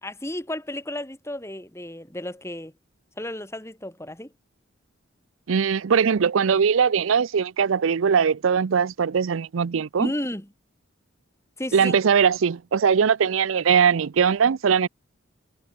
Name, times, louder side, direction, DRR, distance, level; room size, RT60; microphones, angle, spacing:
voice 1, 0.0-2.7 3.2-4.3 10.0-10.5 11.6-12.0, left 1 dB, 15° left, 3.8 m, -33 dB
voice 2, 5.5-10.1 11.7-14.9, right 6 dB, 85° right, 0.5 m, -20 dB
head